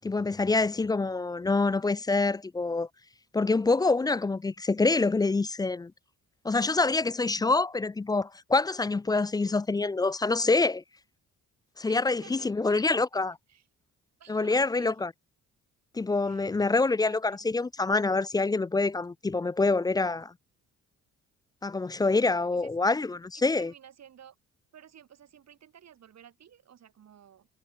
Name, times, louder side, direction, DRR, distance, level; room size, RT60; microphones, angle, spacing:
voice 1, 0.0-2.9 3.3-5.9 6.4-10.8 11.8-13.4 14.3-15.1 15.9-20.3 21.6-23.7, left 3 dB, 15° left, 0.3 m, -26 dB
voice 2, 11.9-13.0 13.5-13.6 14.2-15.0 16.2-16.6 17.0-17.4 22.5-22.7 23.3-24.4 24.7-27.5, right 9 dB, 60° right, 6.5 m, -54 dB
cardioid pair, 90°, 30 cm